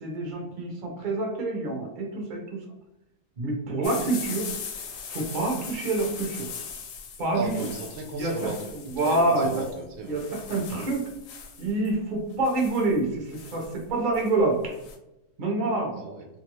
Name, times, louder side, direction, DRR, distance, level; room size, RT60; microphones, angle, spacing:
voice 1, 0.0-2.6 3.4-4.5 5.1-6.5 7.2-7.7 8.1-9.6 10.1-11.1 11.6-14.7 15.4-15.9, right 2 dB, 45° right, 0 dB, 0.6 m, -27 dB
sound 1, 3.8-15.0, left 6 dB, 70° left, 0.9 m, -40 dB
voice 2, 7.3-8.7 9.0-10.3 15.9-16.3, right 3 dB, 70° right, 2 dB, 1.0 m, -35 dB
2.6 x 2.5 x 3.0 m, 0.90 s
omnidirectional pair, 1.7 m